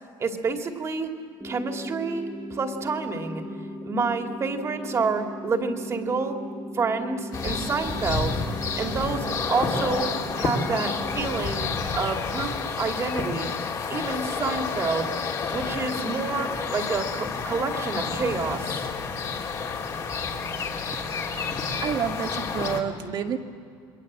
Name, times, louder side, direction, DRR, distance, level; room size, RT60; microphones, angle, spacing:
voice 1, 0.2-1.1 1.4-2.2 2.5-3.4 3.9-6.4 6.7-8.4 8.8-10.1 10.4-13.5 13.9-15.1 15.5-18.9, right 4 dB, 30° right, 4 dB, 2.6 m, -28 dB
sound 1, 1.4-11.4, left 1 dB, 5° left, 1.2 m, -38 dB
sound 2, 7.3-22.8, left 5 dB, 40° left, 3.0 m, -30 dB
voice 2, 21.2-23.4, right 8 dB, 50° right, 6 dB, 1.8 m, -30 dB
28.5 x 22.0 x 7.6 m, 2.3 s
cardioid pair, 125°, 9 cm